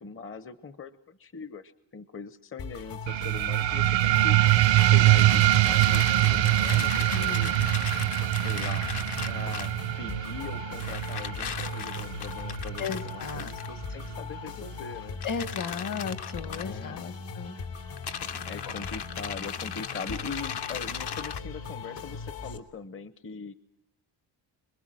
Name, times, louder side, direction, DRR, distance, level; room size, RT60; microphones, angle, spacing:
voice 1, 0.0-4.4 4.8-7.6 8.4-8.9 9.3-9.7 10.0-15.2 16.4-17.0 18.5-23.5, left 5 dB, 30° left, 14 dB, 0.9 m, -41 dB
sound 1, 2.6-22.6, left 5 dB, 80° left, 3.5 m, -40 dB
sound 2, 3.1-14.1, right 15 dB, 85° right, 0.9 m, -24 dB
sound 3, 4.7-9.8 10.8-13.7 15.2-16.6 18.0-21.4, left 8 dB, 65° left, 1.3 m, -38 dB
voice 2, 7.1-7.6 12.8-13.5 15.2-17.6 18.6-18.7, left 6 dB, 45° left, 14 dB, 1.4 m, -35 dB
26.0 x 22.0 x 7.6 m, 0.75 s
cardioid pair, 115°, 44 cm